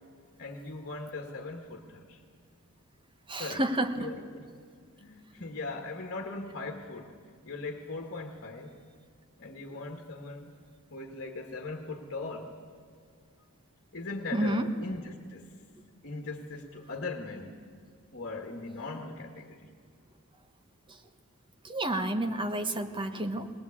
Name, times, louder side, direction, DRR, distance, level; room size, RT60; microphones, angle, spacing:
voice 1, 0.4-2.2 3.4-3.6 3.9-4.4 5.0-7.1 7.4-8.7 9.4-10.5 10.9-12.5 13.9-15.5 16.0-17.6 18.1-19.6, left 3 dB, 50° left, 3 dB, 1.6 m, -39 dB
voice 2, 3.3-4.1 14.3-14.7 21.6-23.5, right 1 dB, 20° right, 6 dB, 1.2 m, -30 dB
20.5 x 19.5 x 8.6 m, 2.1 s
head